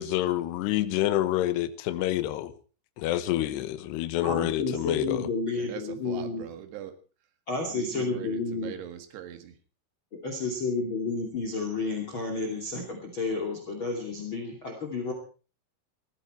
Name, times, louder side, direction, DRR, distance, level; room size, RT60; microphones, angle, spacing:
voice 1, 0.0-2.5 3.0-5.3, left 14 dB, 75° left, 13 dB, 3.0 m, -28 dB
voice 2, 4.2-6.4 7.5-8.7 10.1-15.1, left 3 dB, 35° left, 3 dB, 2.8 m, -31 dB
voice 3, 5.5-6.9 7.7-9.6, right 10 dB, 70° right, 8 dB, 3.8 m, -41 dB
20.0 x 15.0 x 4.5 m, 0.37 s
omnidirectional pair, 5.2 m